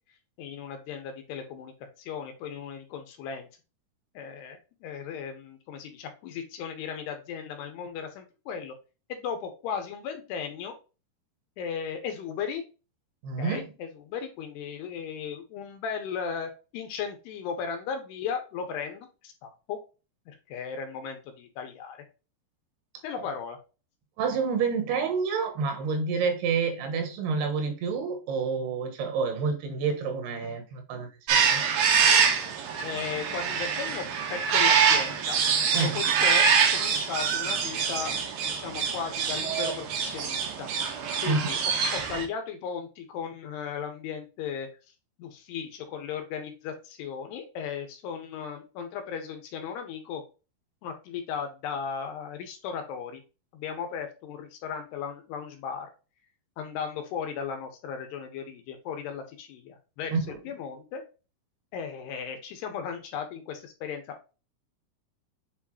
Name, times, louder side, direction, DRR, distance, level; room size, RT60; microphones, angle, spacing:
voice 1, 0.4-3.5 4.1-8.7 9.1-10.7 11.6-12.6 13.4-19.8 20.3-22.0 23.0-23.6 32.8-35.4 35.7-38.1 38.4-40.7 41.2-44.7 45.2-50.2 50.8-53.2 53.5-55.9 56.6-60.1 60.4-61.0 61.7-64.3, left 7 dB, 85° left, 3.3 m, -36 dB
voice 2, 13.2-13.7 24.2-31.6 35.7-36.0 41.3-41.5 60.1-60.4, right 5 dB, 85° right, 3.3 m, -28 dB
sound 1, 31.3-42.2, right 6 dB, 70° right, 2.8 m, -25 dB
8.1 x 4.4 x 2.9 m
omnidirectional pair, 4.6 m